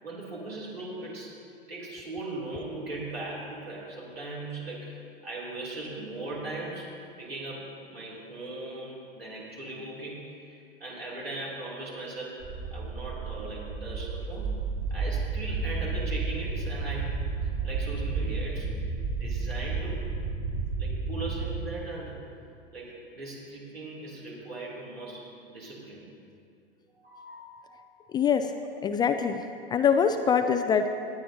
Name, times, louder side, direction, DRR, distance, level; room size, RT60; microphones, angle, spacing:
voice 1, 0.0-1.3 1.7-6.9 7.2-12.4 12.7-14.6 14.9-17.1 17.6-18.7 19.2-20.1 20.8-22.2 22.7-26.1 27.0-27.8 28.6-28.7, right 2 dB, 80° right, -5 dB, 3.5 m, -39 dB
sound 1, 12.4-21.5, right 4 dB, 35° right, 1.9 m, -32 dB
voice 2, 28.1-28.5 28.8-29.5 29.7-30.9, left 7 dB, 15° left, 7 dB, 0.3 m, -24 dB
18.5 x 11.0 x 2.9 m, 2.4 s
figure-of-eight pair, 95°, 30 cm